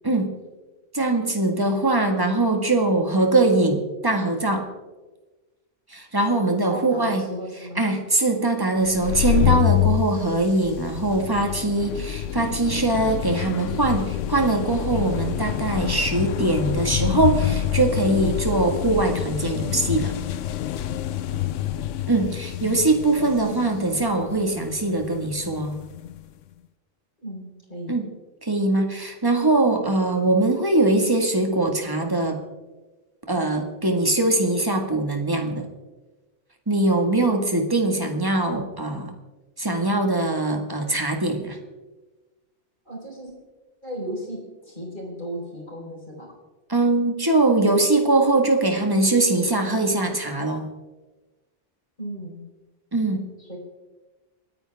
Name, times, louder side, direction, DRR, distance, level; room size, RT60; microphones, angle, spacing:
voice 1, 0.9-4.7 5.9-7.2 7.8-20.2 22.1-25.8 27.9-28.1 28.4-32.4 33.3-35.7 36.7-39.2 39.6-41.6 46.7-50.7 52.9-53.3, right 2 dB, 20° right, 4 dB, 1.7 m, -22 dB
voice 2, 6.7-7.8 8.9-9.0 21.3-21.5 27.2-28.0 42.8-43.3 43.8-46.3 52.0-52.4 53.4-53.6, right 1 dB, 40° left, -2 dB, 4.6 m, -35 dB
sound 1, 8.8-26.2, left 11 dB, 85° left, 1.0 m, -27 dB
28.0 x 9.9 x 3.5 m, 1.2 s
omnidirectional pair, 1.2 m